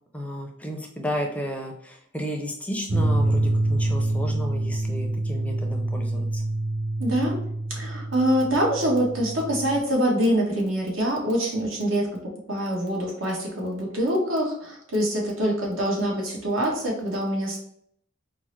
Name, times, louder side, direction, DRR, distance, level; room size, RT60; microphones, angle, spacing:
voice 1, 0.1-6.4, equal, 5° left, 2 dB, 0.4 m, -33 dB
sound 1, 2.9-9.8, right 1 dB, 60° right, 0.6 m, -26 dB
voice 2, 7.0-7.5 7.7-17.6, equal, 90° right, -1 dB, 1.1 m, -25 dB
4.4 x 2.0 x 3.1 m, 0.67 s
head